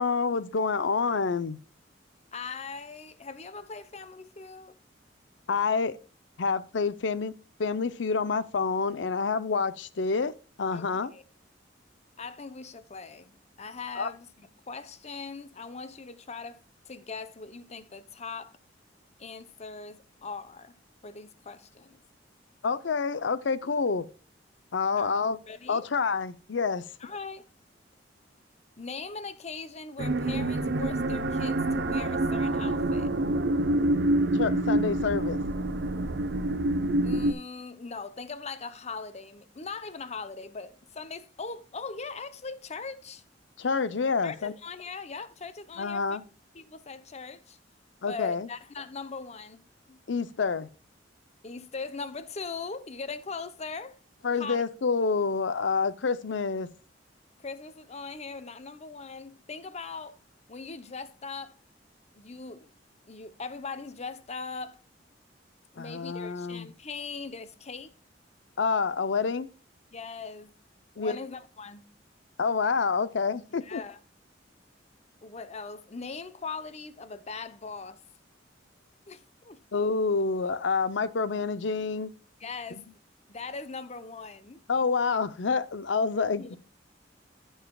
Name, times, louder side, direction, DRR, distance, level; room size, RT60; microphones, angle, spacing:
voice 1, 0.0-1.6 5.5-6.0 6.4-7.3 7.6-10.3 10.6-11.1 14.0-14.1 22.6-24.1 24.7-25.4 25.7-26.8 34.3-35.4 43.6-44.5 45.8-46.2 48.0-48.5 50.1-50.7 54.2-56.7 65.8-66.7 68.6-69.5 71.0-71.2 72.4-73.8 79.7-82.1 84.7-86.6, left 4 dB, 75° left, 0.6 m, -28 dB
voice 2, 2.3-4.8 10.7-11.2 12.2-16.6 16.9-18.6 19.2-20.8 21.0-22.0 25.0-25.2 25.5-25.9 27.0-27.5 28.8-33.1 37.0-43.2 44.2-46.2 46.5-47.6 48.1-50.0 51.4-54.0 54.4-54.6 57.4-60.2 60.5-61.6 62.1-62.7 63.1-64.8 65.7-67.9 69.9-70.6 71.0-71.9 73.6-74.0 75.2-78.0 79.1-79.8 82.4-82.9 83.3-84.6 86.4-86.6, left 4 dB, 35° left, 0.7 m, -40 dB
sound 1, 30.0-37.3, right 1 dB, 60° right, 0.7 m, -27 dB
14.5 x 5.6 x 2.3 m
head